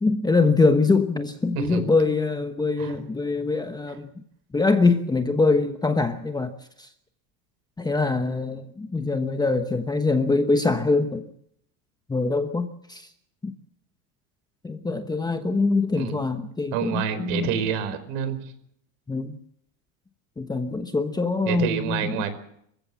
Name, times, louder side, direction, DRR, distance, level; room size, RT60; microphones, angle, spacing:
voice 1, 0.0-4.1 4.5-6.5 6.8-6.9 7.8-11.2 12.1-13.1 13.4-13.5 14.6-17.6 19.1-19.4 20.4-22.2, left 3 dB, 10° left, 8 dB, 1.1 m, -23 dB
voice 2, 16.7-18.4 21.5-22.4, right 8 dB, 60° right, 11 dB, 4.9 m, -28 dB
27.0 x 15.5 x 7.3 m, 0.71 s
cardioid pair, 155°, 49 cm